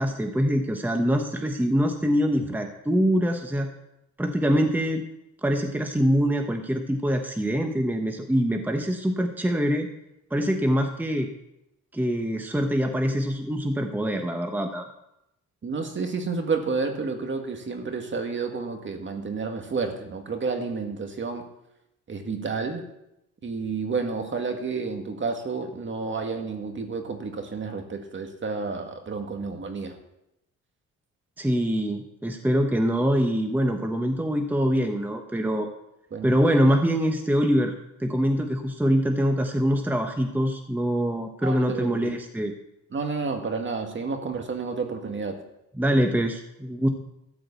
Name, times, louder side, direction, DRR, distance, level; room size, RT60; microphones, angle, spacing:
voice 1, 0.0-3.7 4.2-5.0 5.4-9.9 10.3-11.3 11.9-14.9 31.4-35.7 36.2-37.7 38.0-42.5 45.8-46.9, equal, 5° right, 4 dB, 1.1 m, -24 dB
voice 2, 15.6-21.5 22.1-22.9 23.4-29.9 36.1-36.3 41.4-42.1 42.9-45.4, right 4 dB, 40° right, 5 dB, 1.9 m, -30 dB
13.5 x 5.0 x 8.3 m, 0.85 s
cardioid pair, 90°, 30 cm